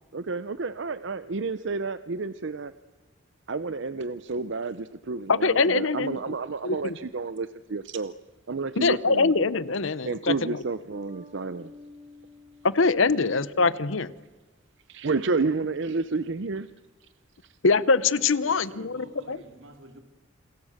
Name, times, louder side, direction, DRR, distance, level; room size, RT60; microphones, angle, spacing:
voice 1, 0.1-2.7 3.5-8.1 8.5-9.3 10.1-11.7 14.9-16.7, right 4 dB, 65° right, 13 dB, 0.7 m, -30 dB
voice 2, 5.3-6.3 6.6-7.0 8.8-10.6 12.6-14.1 17.6-19.4, left 4 dB, 75° left, 17 dB, 0.9 m, -23 dB
Bass guitar, 10.9-13.9, equal, 30° right, 4.2 m, -49 dB
voice 3, 18.3-20.0, right 1 dB, 85° right, 6 dB, 3.4 m, -48 dB
28.0 x 21.5 x 6.5 m, 1.2 s
head